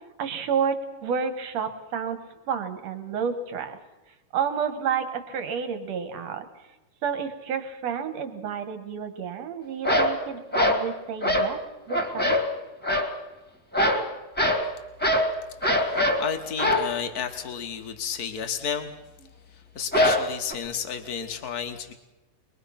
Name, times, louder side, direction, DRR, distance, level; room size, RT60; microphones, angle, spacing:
voice 1, 0.2-2.2 2.5-3.8 4.3-6.5 7.0-11.6 11.9-12.4, right 7 dB, 55° right, 9 dB, 2.4 m, -30 dB
sound 1, 9.8-10.2 10.5-10.9 11.2-11.5 11.9-12.5 12.8-13.1 13.7-14.1 14.4-14.7 15.0-15.3 15.6-16.2 16.6-16.9 19.9-20.5, left 1 dB, 5° left, 1.5 m, -22 dB
voice 2, 15.7-18.9 19.5-21.9, left 7 dB, 80° left, 6 dB, 0.8 m, -32 dB
23.5 x 22.5 x 5.9 m, 1.1 s
omnidirectional pair, 4.0 m